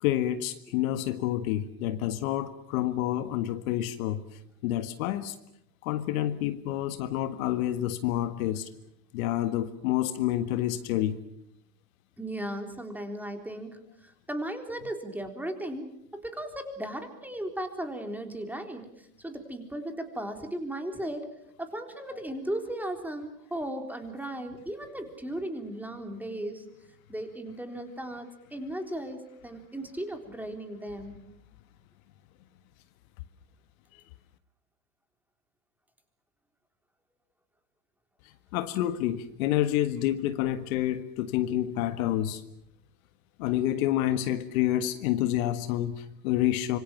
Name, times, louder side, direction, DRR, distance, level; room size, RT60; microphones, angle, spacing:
voice 1, 0.0-4.2 4.6-5.3 5.8-8.7 9.1-11.2 33.9-34.0 38.5-42.4 43.4-46.8, left 13 dB, 55° left, 10 dB, 1.7 m, -28 dB
voice 2, 12.2-21.3 21.6-26.6 27.1-31.2, right 1 dB, 5° right, 5 dB, 3.8 m, -36 dB
26.0 x 24.0 x 7.3 m, 0.76 s
hypercardioid pair, 115°, 50 cm